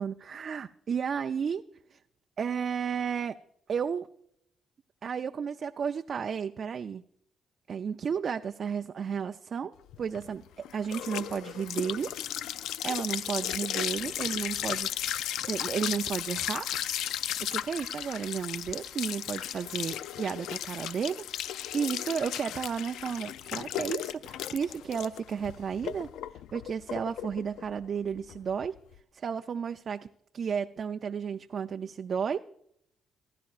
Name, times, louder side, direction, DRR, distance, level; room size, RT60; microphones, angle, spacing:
voice 1, 0.0-1.6 1.9-2.0 2.4-3.4 3.7-4.1 5.0-7.0 7.7-12.1 12.8-16.7 17.4-26.1 26.5-28.8 29.1-30.1 30.3-32.4, right 7 dB, 50° right, 7 dB, 0.4 m, -33 dB
sound 1, 9.9-29.0, left 11 dB, 85° left, 0.3 m, -35 dB
15.5 x 12.5 x 2.4 m, 0.73 s
cardioid pair, 90°, 0 cm